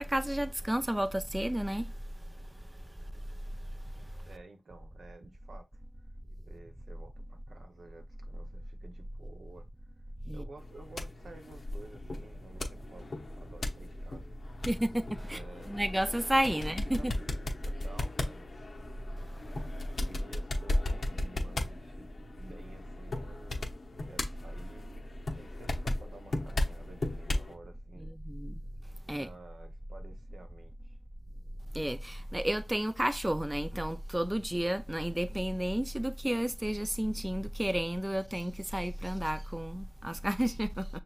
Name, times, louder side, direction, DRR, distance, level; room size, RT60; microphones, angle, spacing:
voice 1, 0.0-1.9 10.3-10.4 14.7-15.4 15.7-17.1 28.2-28.6 29.1-29.3 31.7-40.9, right 1 dB, 10° right, 0.4 m, -31 dB
voice 2, 4.2-5.8 6.5-9.7 10.3-14.3 15.3-15.7 16.3-18.7 20.0-22.1 22.4-24.9 25.3-28.1 29.1-31.0, right 3 dB, 75° right, 0.9 m, -52 dB
sound 1, 10.6-27.5, left 2 dB, 65° left, 0.8 m, -36 dB
6.2 x 2.8 x 2.4 m
cardioid pair, 60°, 0 cm